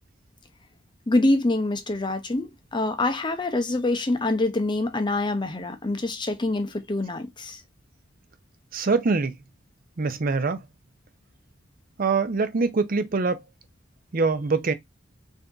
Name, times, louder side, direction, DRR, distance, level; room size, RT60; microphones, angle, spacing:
voice 1, 1.1-7.6, left 2 dB, 25° left, 0.6 m, -25 dB
voice 2, 8.7-9.4 10.0-10.6 12.0-13.4 14.1-14.7, right 4 dB, 45° right, 0.5 m, -24 dB
3.4 x 2.7 x 3.7 m
head